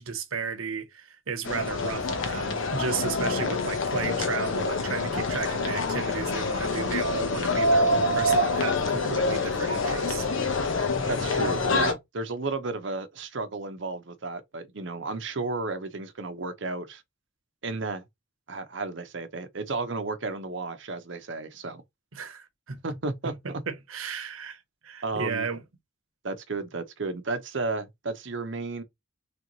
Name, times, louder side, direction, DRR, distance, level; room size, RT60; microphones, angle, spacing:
voice 1, 0.0-10.3 22.1-22.8 23.2-25.6, right 5 dB, 85° right, 0.9 m, -34 dB
sound 1, 1.5-11.9, left 2 dB, 65° left, 0.9 m, -26 dB
voice 2, 11.1-17.0 17.6-18.0 18.5-21.8 22.8-23.6 25.0-25.5 26.2-28.8, right 3 dB, 60° right, 0.7 m, -33 dB
3.3 x 3.0 x 4.0 m
head